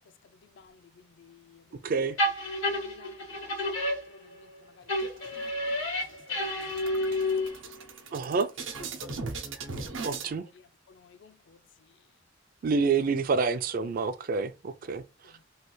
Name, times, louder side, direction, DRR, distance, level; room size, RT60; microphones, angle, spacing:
voice 1, 0.5-1.6 2.7-3.3 3.6-5.3 5.8-5.9 6.3-7.6 9.0-9.1 10.0-11.6 15.2-15.3, left 5 dB, 65° left, 0.4 m, -55 dB
voice 2, 1.8-2.2 8.1-8.5 10.0-10.4 12.6-15.0, right 4 dB, 45° right, 0.4 m, -27 dB
sound 1, 2.2-4.5 4.9-7.7, left 1 dB, 85° left, 1.7 m, -30 dB
sound 2, 5.0-5.7 6.1-6.2 6.5-10.3, right 4 dB, 80° right, 0.7 m, -39 dB
3.2 x 2.3 x 3.0 m
head